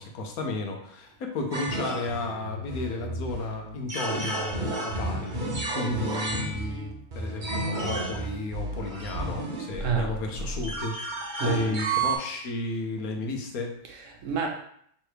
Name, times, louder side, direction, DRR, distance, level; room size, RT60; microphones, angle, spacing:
voice 1, 0.0-5.4 5.7-11.0 11.4-13.7, left 2 dB, 75° left, 3 dB, 1.2 m, -33 dB
sound 1, 1.5-12.2, right 2 dB, 40° right, 0.8 m, -32 dB
voice 2, 9.8-10.2 11.4-11.8 13.9-14.5, right 6 dB, 65° right, 2 dB, 1.0 m, -29 dB
3.3 x 3.2 x 4.6 m, 0.66 s
omnidirectional pair, 1.5 m